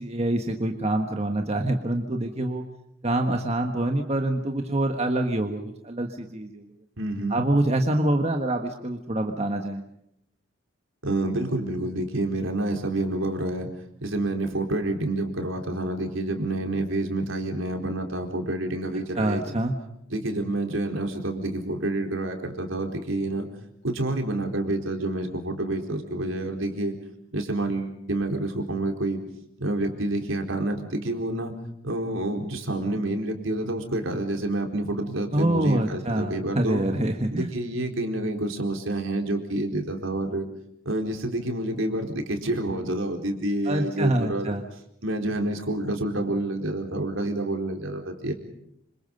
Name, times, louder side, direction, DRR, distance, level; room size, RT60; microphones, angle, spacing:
voice 1, 0.0-2.6 3.0-6.7 7.3-9.8 19.2-19.8 35.3-37.5 43.6-44.6, right 1 dB, 30° right, 4 dB, 1.5 m, -26 dB
voice 2, 7.0-7.4 11.0-13.7 14.0-19.4 20.1-23.5 23.8-27.0 27.3-29.2 29.6-31.5 31.8-36.9 37.3-40.5 40.9-44.5 45.0-48.3, right 1 dB, 70° right, 3 dB, 4.2 m, -28 dB
27.5 x 26.5 x 5.4 m, 0.77 s
head